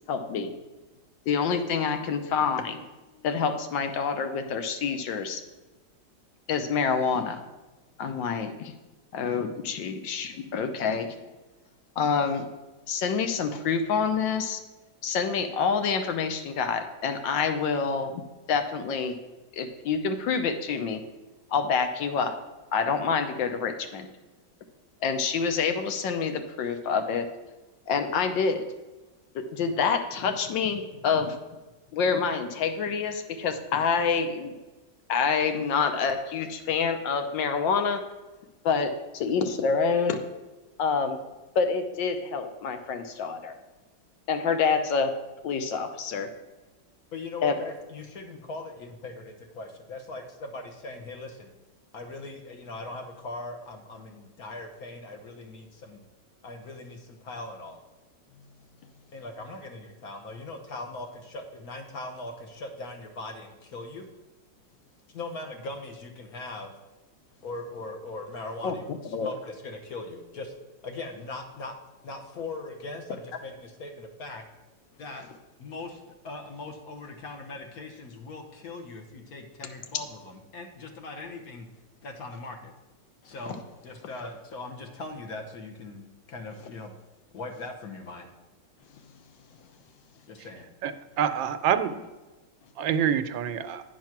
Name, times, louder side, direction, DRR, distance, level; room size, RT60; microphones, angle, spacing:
voice 1, 0.1-0.5 1.3-2.8 3.2-5.4 6.5-7.4 8.0-8.7 9.1-11.1 12.0-12.5 12.9-14.6 15.0-18.2 18.5-19.2 19.5-21.0 21.5-22.3 22.7-24.1 25.0-27.3 27.9-28.7 29.3-31.4 31.9-34.6 35.1-38.0 38.6-40.2 40.8-41.2 41.5-43.5 44.3-45.1 45.4-46.3 47.4-47.5 68.6-68.7 69.1-69.3, left 5 dB, 80° left, 7 dB, 1.5 m, -27 dB
voice 2, 47.1-51.5 51.9-56.0 56.4-57.8 59.1-64.1 65.1-66.7 67.4-70.5 70.8-71.7 72.0-74.4 75.0-75.2 75.6-81.7 82.0-82.7 83.2-83.6 83.8-86.9 87.3-88.3 90.3-90.7, left 2 dB, 60° left, 4 dB, 1.3 m, -40 dB
voice 3, 90.8-91.9 92.8-93.8, right 8 dB, 90° right, 11 dB, 1.4 m, -26 dB
9.4 x 4.7 x 5.9 m, 1.1 s
omnidirectional pair, 2.0 m